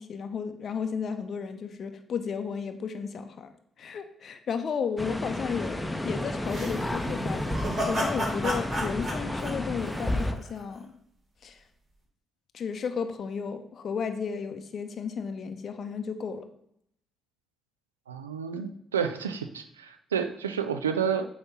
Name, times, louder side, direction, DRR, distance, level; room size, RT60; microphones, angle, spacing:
voice 1, 0.0-3.5 3.8-10.9 11.4-11.6 12.5-16.5, left 6 dB, 55° left, 8 dB, 0.6 m, -33 dB
sound 1, 5.0-10.3, left 1 dB, 10° left, 0.7 m, -32 dB
sound 2, 6.5-10.6, equal, 50° right, 2.9 m, -32 dB
voice 2, 18.1-21.3, right 7 dB, 90° right, 8 dB, 0.4 m, -30 dB
7.9 x 2.9 x 5.5 m, 0.71 s
hypercardioid pair, 40°, 0 cm